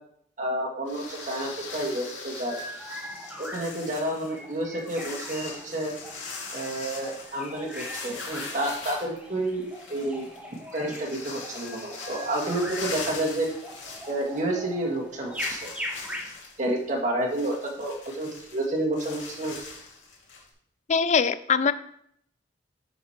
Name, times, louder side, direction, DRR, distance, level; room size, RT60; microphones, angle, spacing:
voice 1, 0.4-2.6 3.4-5.9 6.5-10.3 10.7-13.5 14.1-15.7 16.6-19.6, right 1 dB, 40° right, -1 dB, 1.8 m, -30 dB
sound 1, 0.9-14.6 14.9-15.0 15.3-20.5, left 4 dB, 85° left, 2.3 m, -41 dB
sound 2, 2.4-16.3, equal, 5° right, 1.1 m, -41 dB
voice 2, 20.9-21.7, left 6 dB, 40° left, 14 dB, 0.4 m, -22 dB
10.5 x 4.7 x 4.3 m, 0.71 s
head